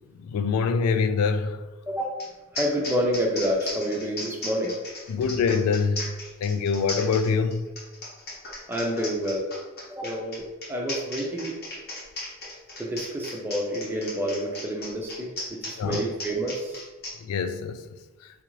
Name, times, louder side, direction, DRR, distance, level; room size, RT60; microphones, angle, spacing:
voice 1, 0.2-1.6 5.1-6.0 6.4-7.6 15.8-16.0 17.3-17.8, left 5 dB, 85° left, 12 dB, 0.3 m, -24 dB
sound 1, 2.2-2.3 2.5-17.1, left 2 dB, 45° left, 0.8 m, -36 dB
voice 2, 2.5-4.8 8.7-9.5 9.9-11.6 12.8-16.8, equal, 10° right, -1 dB, 0.4 m, -28 dB
4.0 x 2.4 x 3.0 m, 1.1 s
head